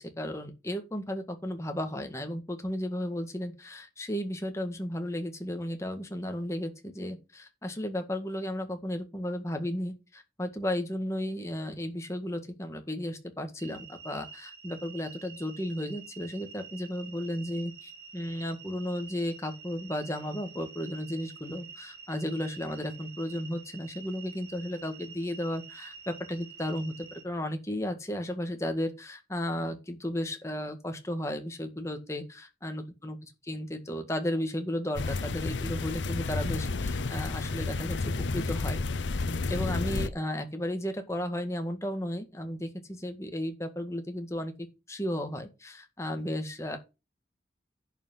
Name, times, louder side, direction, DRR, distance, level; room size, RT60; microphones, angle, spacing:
voice 1, 0.0-33.2 33.4-38.8 39.3-44.5 44.9-46.8, left 1 dB, 15° left, 1.8 m, -34 dB
sound 1, 13.6-27.2, right 6 dB, 60° right, 2.1 m, -48 dB
sound 2, 35.0-40.1, left 3 dB, 90° left, 0.7 m, -31 dB
10.5 x 5.8 x 5.5 m
head